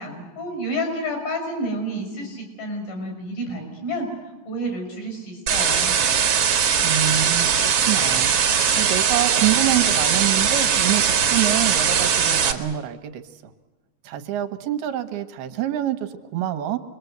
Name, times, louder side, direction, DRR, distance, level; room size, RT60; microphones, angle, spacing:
voice 1, 0.0-4.1 4.5-5.9, equal, 65° left, 3 dB, 7.4 m, -30 dB
sound 1, 5.5-12.5, right 7 dB, 50° right, 2.1 m, -20 dB
voice 2, 6.8-13.2 14.0-16.8, right 12 dB, 75° right, 5 dB, 2.9 m, -26 dB
27.5 x 21.5 x 8.0 m, 1.2 s
omnidirectional pair, 4.6 m